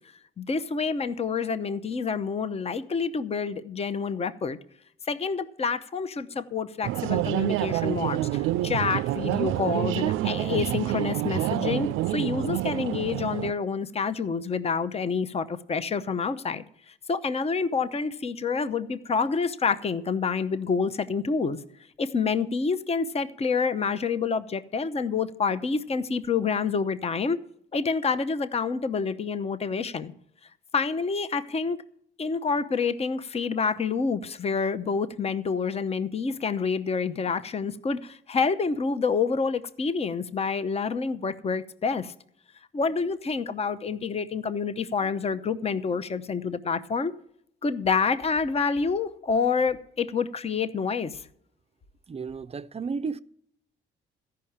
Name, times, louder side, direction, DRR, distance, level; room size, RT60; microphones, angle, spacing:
voice 1, 0.4-4.6 5.1-16.6 17.1-21.6 22.0-27.4 27.7-30.1 30.7-31.8 32.2-42.1 42.7-47.1 47.6-51.1, left 5 dB, 30° left, 0.7 m, -28 dB
sound 1, 6.8-13.5, right 15 dB, 90° right, 0.4 m, -27 dB
voice 2, 52.1-53.2, right 5 dB, 30° right, 0.5 m, -33 dB
13.5 x 5.8 x 8.6 m
cardioid pair, 90°, 20 cm